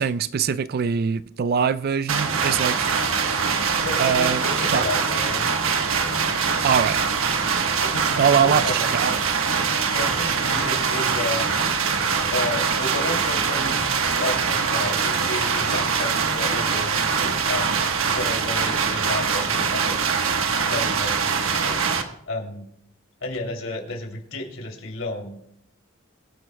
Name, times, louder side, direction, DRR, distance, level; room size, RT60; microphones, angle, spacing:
voice 1, 0.0-3.1 4.0-4.4 4.7-4.9 6.6-7.0 8.2-9.2, right 7 dB, 50° right, 0.4 m, -22 dB
sound 1, 2.1-22.0, right 5 dB, 90° right, 1.2 m, -23 dB
voice 2, 3.8-5.4 7.8-8.9 9.9-11.5 12.3-17.8 18.1-20.1 20.6-21.8 22.3-22.7 23.2-25.4, left 2 dB, 75° left, 2.9 m, -32 dB
23.5 x 10.5 x 2.2 m
head